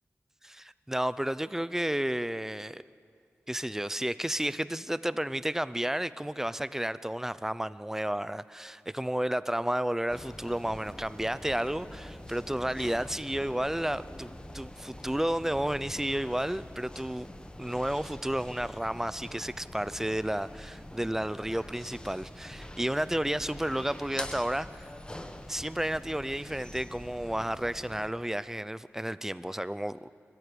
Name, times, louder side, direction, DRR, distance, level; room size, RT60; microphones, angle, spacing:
voice 1, 0.4-2.8 3.5-17.3 17.6-24.9 25.5-30.1, right 1 dB, 10° right, 16 dB, 0.6 m, -32 dB
sound 1, 10.1-28.1, left 1 dB, 20° left, 1.4 m, -45 dB
23.5 x 14.5 x 10.0 m, 2.4 s
wide cardioid pair, 75°, 5 cm